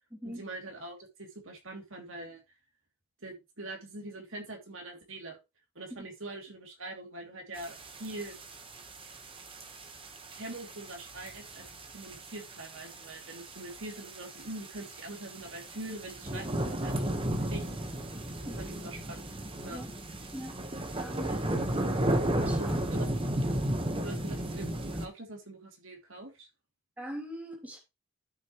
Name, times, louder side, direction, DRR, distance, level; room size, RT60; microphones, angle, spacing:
voice 1, 0.2-2.4 3.2-5.4 5.7-8.3 10.4-11.6 11.9-17.7 18.4-19.3 19.6-19.8 22.6-23.1 24.0-26.5, right 2 dB, 65° right, 2.8 m, -43 dB
sound 1, 7.6-25.1, right 1 dB, 25° right, 1.2 m, -34 dB
voice 2, 21.0-21.4 22.3-22.8 27.0-27.8, equal, 10° right, 2.7 m, -41 dB
13.0 x 6.3 x 3.1 m
head